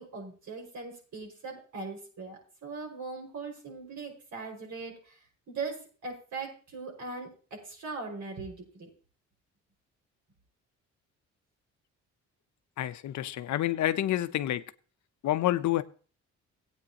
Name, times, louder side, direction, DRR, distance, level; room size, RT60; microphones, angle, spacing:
voice 1, 0.0-5.2 5.5-8.9, right 4 dB, 70° right, 5.6 m, -40 dB
voice 2, 12.8-14.6 15.2-15.8, left 13 dB, 70° left, 0.8 m, -28 dB
17.0 x 8.9 x 3.0 m
cardioid pair, 90°, 30 cm